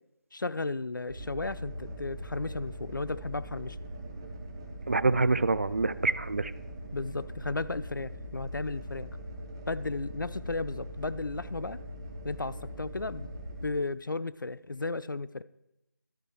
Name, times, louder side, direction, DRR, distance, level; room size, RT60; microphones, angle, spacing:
voice 1, 0.3-3.8 6.9-9.1 9.7-11.8 12.2-13.3 13.6-15.4, left 3 dB, 75° left, 17 dB, 0.4 m, -34 dB
sound 1, 1.1-13.7, equal, 15° right, 0.9 m, -41 dB
voice 2, 4.9-6.5, right 3 dB, 40° right, 16 dB, 0.4 m, -26 dB
13.0 x 8.5 x 3.3 m, 0.86 s
figure-of-eight pair, 160°, 11 cm